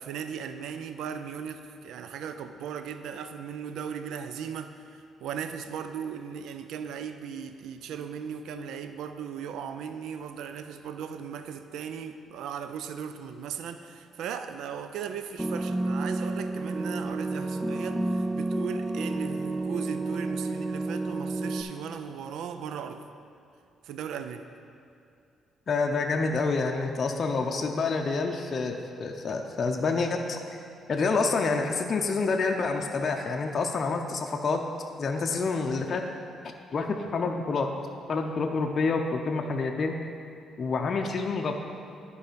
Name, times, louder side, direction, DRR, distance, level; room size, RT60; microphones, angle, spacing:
voice 1, 0.0-23.0 23.8-24.4, right 7 dB, 80° right, 9 dB, 0.4 m, -37 dB
sound 1, 15.4-21.6, right 2 dB, 15° right, 0.5 m, -30 dB
voice 2, 25.7-30.4 30.9-34.6 35.0-36.0 36.7-37.7 38.1-39.9 40.6-41.6, left 4 dB, 50° left, 2 dB, 0.6 m, -28 dB
10.5 x 4.8 x 5.1 m, 2.5 s
cardioid pair, 90°, 0 cm